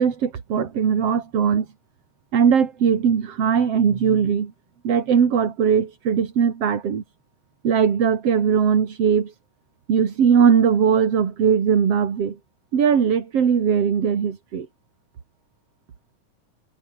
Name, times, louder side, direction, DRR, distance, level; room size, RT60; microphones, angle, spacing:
voice 1, 0.0-1.7 2.3-4.5 4.8-7.0 7.6-9.3 9.9-12.4 12.7-14.7, right 7 dB, 45° right, 3.1 m, -19 dB
omnidirectional pair, 4.2 m